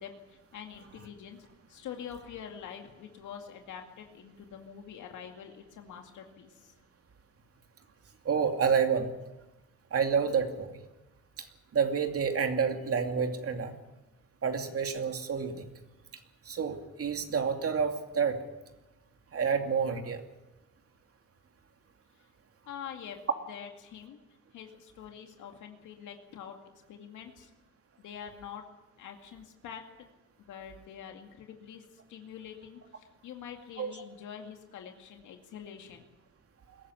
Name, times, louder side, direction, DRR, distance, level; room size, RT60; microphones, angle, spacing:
voice 1, 0.0-1.4 1.7-6.7 22.7-23.2 23.5-24.2 24.5-26.6 26.9-27.5 28.0-28.6 29.0-29.9 30.4-31.8 32.1-36.1, left 8 dB, 80° left, 3 dB, 2.2 m, -45 dB
voice 2, 8.2-9.1 9.9-10.8 11.4-11.5 11.7-13.8 14.4-15.7 16.5-18.4 19.3-20.2 33.8-33.9, right 6 dB, 50° right, 5 dB, 2.6 m, -29 dB
22.0 x 14.0 x 9.7 m, 1.0 s
cardioid pair, 90°, 30 cm